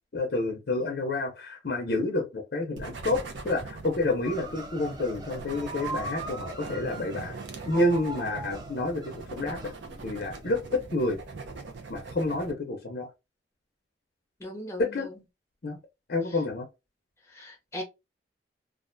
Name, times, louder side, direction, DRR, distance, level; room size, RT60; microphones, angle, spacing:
voice 1, 0.1-7.4 7.7-9.7 10.0-11.2 11.9-13.1 14.8-15.1 15.6-15.8 16.1-16.7, left 2 dB, 55° left, 0.6 m, -29 dB
sound 1, 2.8-12.5, right 3 dB, 85° right, 0.5 m, -41 dB
sound 2, 4.2-10.5, right 2 dB, 25° right, 0.5 m, -40 dB
voice 2, 14.4-15.2 17.3-17.8, left 1 dB, 15° left, 0.7 m, -39 dB
2.4 x 2.1 x 2.5 m
head